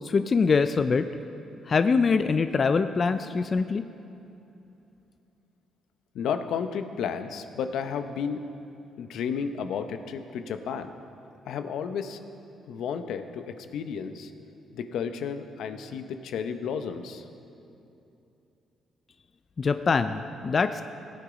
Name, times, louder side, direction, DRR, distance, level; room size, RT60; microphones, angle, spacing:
voice 1, 0.0-1.1 1.7-3.8 19.6-20.8, left 5 dB, 40° left, 10 dB, 0.4 m, -23 dB
voice 2, 6.1-8.5 9.0-10.9 11.4-12.2 12.7-14.3 14.7-17.2, left 7 dB, 80° left, 8 dB, 0.7 m, -32 dB
16.5 x 8.7 x 5.0 m, 2.8 s
cardioid pair, 90°, 0 cm